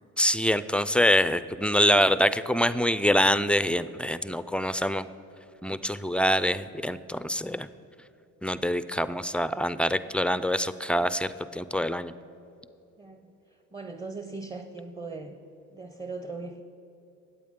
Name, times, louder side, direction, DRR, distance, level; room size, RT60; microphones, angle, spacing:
voice 1, 0.2-5.1 5.6-7.7 8.4-12.1, equal, 5° left, 14 dB, 0.3 m, -25 dB
voice 2, 13.0-15.4 15.7-16.6, right 3 dB, 15° right, 7 dB, 0.7 m, -39 dB
20.0 x 8.4 x 3.7 m, 2.9 s
cardioid pair, 90°, 30 cm